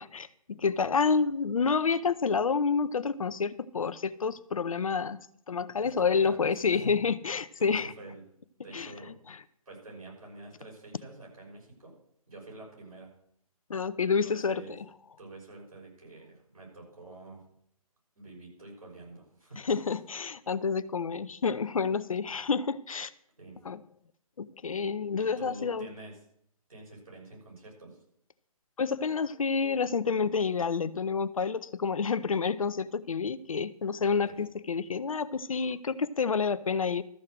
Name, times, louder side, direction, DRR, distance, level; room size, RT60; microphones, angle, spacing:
voice 1, 0.0-5.2 5.5-7.9 8.7-8.9 13.7-14.6 19.6-23.1 23.6-23.8 24.4-25.9 28.8-37.0, left 5 dB, 65° left, 0.6 m, -29 dB
voice 2, 5.8-6.9 7.6-8.2 8.6-9.2 9.6-12.0 12.3-13.1 14.0-14.8 15.2-17.4 18.1-19.6 23.4-23.6 25.2-26.2 26.7-28.0 34.0-34.4, right 2 dB, 70° right, 6.3 m, -47 dB
13.5 x 6.4 x 6.4 m
figure-of-eight pair, 140°, 19 cm